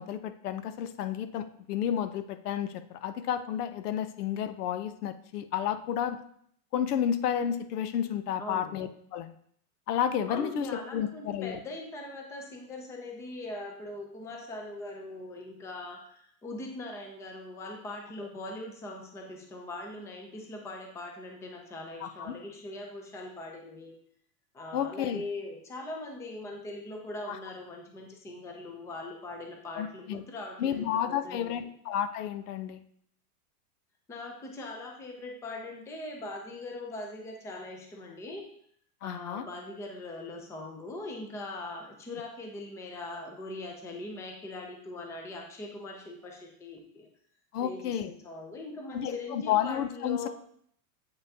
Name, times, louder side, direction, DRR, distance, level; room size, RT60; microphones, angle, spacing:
voice 1, 0.0-6.2 6.7-9.3 9.9-11.6 22.0-22.3 24.7-25.2 27.3-27.4 29.8-30.2 30.6-32.8 39.0-39.5 47.5-48.1 48.9-50.3, left 9 dB, 80° left, 11 dB, 0.8 m, -31 dB
voice 2, 8.4-8.8 10.3-24.0 24.5-31.5 34.1-38.5 39.0-47.1 47.6-50.3, left 2 dB, 5° left, 1 dB, 0.5 m, -41 dB
7.9 x 5.5 x 2.8 m, 0.65 s
supercardioid pair, 150°, 45 cm